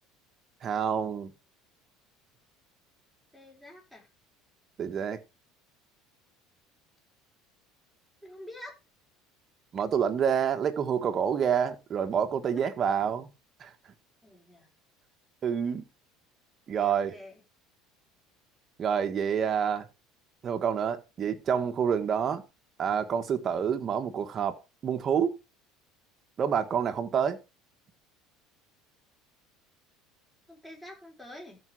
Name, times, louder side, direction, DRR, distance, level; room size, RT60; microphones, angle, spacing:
voice 1, 0.6-1.3 4.8-5.2 9.7-13.3 13.6-13.7 15.4-15.8 16.7-17.1 18.8-19.9 20.4-22.4 22.8-25.4 26.4-27.4, right 7 dB, 35° right, 1.6 m, -28 dB
voice 2, 3.3-4.1 8.2-8.8 14.2-14.7 16.8-17.4 30.5-31.6, left 1 dB, 5° left, 5.0 m, -47 dB
13.5 x 5.5 x 4.9 m
cardioid pair, 130°, 0 cm